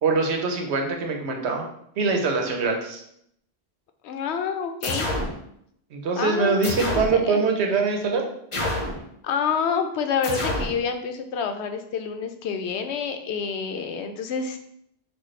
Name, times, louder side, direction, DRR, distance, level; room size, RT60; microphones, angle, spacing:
voice 1, 0.0-1.6 2.0-3.0 5.9-8.3, right 4 dB, 85° right, 2 dB, 1.0 m, -23 dB
voice 2, 4.0-5.1 6.2-6.6 7.1-7.4 9.2-14.6, left 6 dB, 85° left, 7 dB, 0.8 m, -28 dB
sound 1, 4.8-5.4 6.6-7.2 8.5-9.0 10.2-10.8, left 1 dB, 35° left, 0.7 m, -27 dB
6.1 x 2.3 x 3.2 m, 0.72 s
omnidirectional pair, 1.1 m